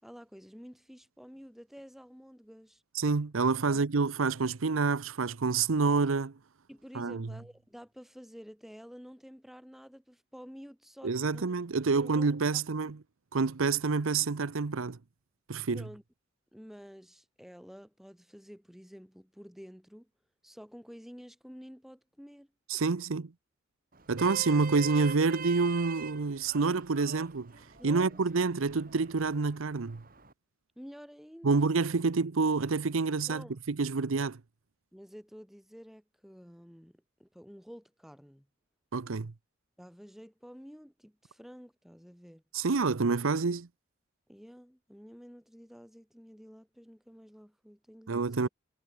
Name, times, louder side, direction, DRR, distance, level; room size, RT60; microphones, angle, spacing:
voice 1, 0.0-2.8 6.7-11.5 11.9-12.3 12.8-12.9 15.7-16.0 16.5-20.1 20.4-22.5 27.8-28.2 30.8-31.7 33.3-33.6 34.9-38.5 39.8-42.4 44.3-48.5, equal, ahead, 5.6 m, -50 dB
voice 2, 2.9-6.3 6.9-7.3 11.0-13.0 13.3-15.0 15.5-15.8 22.7-23.3 24.1-27.5 27.8-30.0 31.4-34.4 38.9-39.3 42.5-43.7 48.1-48.5, right 4 dB, 80° right, 0.8 m, -28 dB
Vehicle horn car horn honking, 23.9-30.3, right 5 dB, 45° right, 4.0 m, -44 dB
head